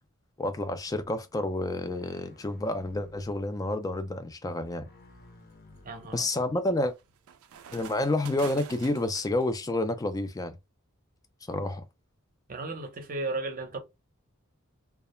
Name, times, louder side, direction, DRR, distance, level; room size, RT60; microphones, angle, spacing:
voice 1, 0.4-4.9 6.1-6.9 7.7-10.6 11.5-11.8, left 2 dB, 15° left, 0.3 m, -29 dB
sound 1, 0.8-1.2 1.8-3.5 3.8-4.1 4.8-6.7 7.5-7.6, left 2 dB, 45° left, 0.6 m, -55 dB
sound 2, 3.9-4.3 4.8-9.5, right 8 dB, 90° right, 0.4 m, -48 dB
voice 2, 5.8-6.3 12.5-13.8, right 2 dB, 40° right, 0.6 m, -34 dB
2.3 x 2.0 x 2.9 m
head